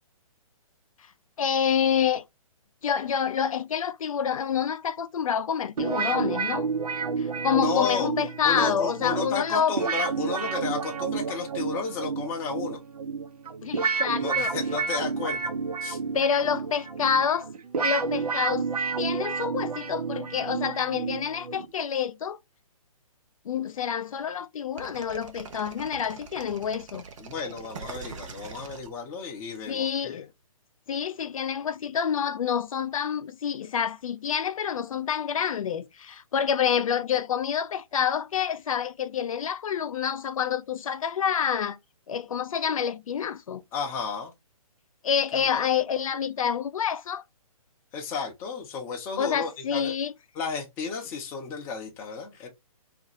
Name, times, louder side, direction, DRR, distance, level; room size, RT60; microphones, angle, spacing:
voice 1, 1.4-2.2 2.8-6.7 7.2-9.8 13.6-14.5 16.1-17.5 17.8-18.7 19.0-22.4 23.5-27.0 29.7-30.3 30.9-41.8 42.1-43.6 45.0-47.2 49.2-50.1, left 8 dB, 65° left, 0.5 m, -27 dB
sound 1, 5.8-21.7, right 5 dB, 85° right, 0.8 m, -30 dB
voice 2, 7.5-8.1 8.4-12.8 14.2-15.4 15.8-16.0 27.2-30.2 43.7-44.3 45.3-45.6 47.9-49.9 50.3-52.5, left 5 dB, 10° left, 0.5 m, -33 dB
sound 2, 24.8-29.6, right 5 dB, 55° right, 0.8 m, -42 dB
2.5 x 2.5 x 4.0 m
hypercardioid pair, 160°, 19 cm